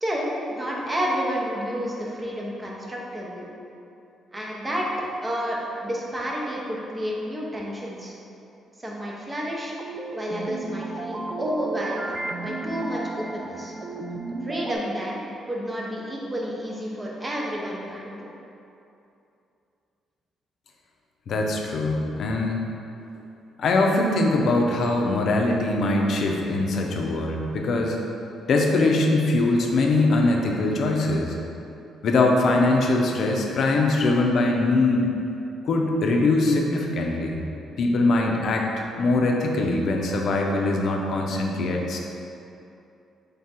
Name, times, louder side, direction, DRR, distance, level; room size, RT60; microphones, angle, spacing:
voice 1, 0.0-3.5 4.3-4.9 5.2-8.1 8.8-9.7 10.1-12.1 12.4-13.7 14.4-15.2 15.5-18.3, equal, 20° right, -3 dB, 0.8 m, -30 dB
sound 1, 9.8-14.8, right 2 dB, 45° right, 0.4 m, -33 dB
voice 2, 21.3-22.6 23.6-28.0 28.5-31.4 32.0-35.1 35.6-37.4 37.8-42.0, left 2 dB, 65° left, 1 dB, 0.6 m, -22 dB
3.6 x 3.4 x 4.3 m, 2.8 s
cardioid pair, 90°, 0 cm